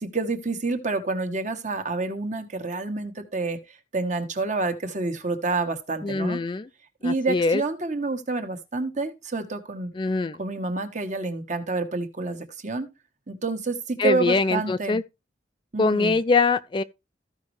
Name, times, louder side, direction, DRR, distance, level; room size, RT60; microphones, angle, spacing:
voice 1, 0.0-3.6 3.9-6.4 7.0-9.9 10.4-12.9 13.3-15.0 15.7-16.2, right 3 dB, 40° right, 1.4 m, -28 dB
voice 2, 6.0-6.7 7.0-7.6 9.9-10.4 14.0-15.0 15.8-16.8, left 3 dB, 25° left, 0.4 m, -23 dB
14.5 x 5.3 x 3.2 m
head